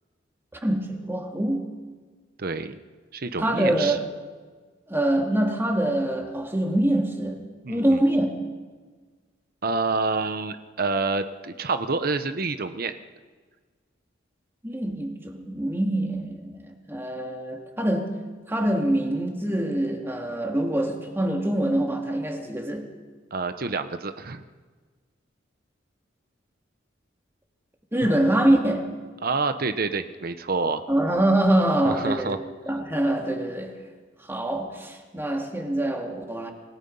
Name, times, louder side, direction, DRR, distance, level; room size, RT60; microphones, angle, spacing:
voice 1, 0.6-1.7 3.4-4.1 4.9-7.4 7.7-8.4 14.6-18.2 18.5-22.9 27.9-28.9 30.9-32.3 32.7-33.8 34.3-36.5, right 1 dB, 15° right, 2.3 m, -24 dB
voice 2, 2.4-2.8 3.1-4.0 7.6-8.0 9.6-12.9 23.3-24.4 29.2-30.8 31.8-32.4, right 3 dB, 55° right, 0.9 m, -28 dB
sound 1, 28.0-30.8, left 1 dB, 90° left, 3.5 m, -45 dB
27.5 x 17.5 x 5.5 m
head